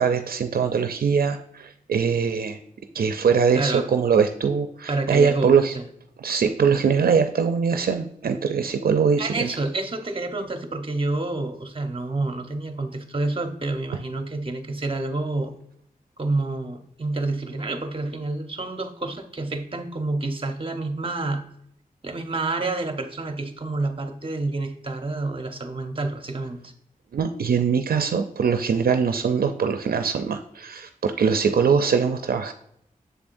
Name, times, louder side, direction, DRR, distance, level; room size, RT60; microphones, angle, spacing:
voice 1, 0.0-2.6 2.9-5.7 6.2-9.5 27.1-32.5, right 6 dB, 85° right, 7 dB, 0.5 m, -22 dB
voice 2, 3.5-3.8 4.9-5.8 9.2-15.5 16.2-21.5 22.0-26.7, right 2 dB, 35° right, 6 dB, 0.9 m, -28 dB
7.1 x 7.1 x 2.6 m, 0.71 s
wide cardioid pair, 100°, 15 cm